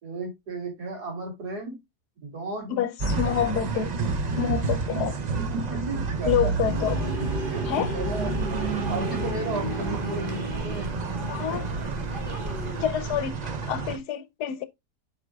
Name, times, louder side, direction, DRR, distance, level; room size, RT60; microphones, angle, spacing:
voice 1, 0.0-1.8 2.2-2.8 4.0-4.1 4.9-5.1 5.3-6.5 7.5-10.9 11.2-11.6, right 2 dB, 75° right, 3.5 m, -35 dB
voice 2, 2.7-3.9 4.4-5.2 6.3-7.1 7.7-7.9 11.3-11.6 12.8-14.7, left 10 dB, 80° left, 1.2 m, -28 dB
sound 1, 3.0-14.0, right 4 dB, 55° right, 0.4 m, -30 dB
sound 2, 6.6-12.8, right 2 dB, 35° right, 1.5 m, -34 dB
7.8 x 5.3 x 2.3 m
omnidirectional pair, 1.7 m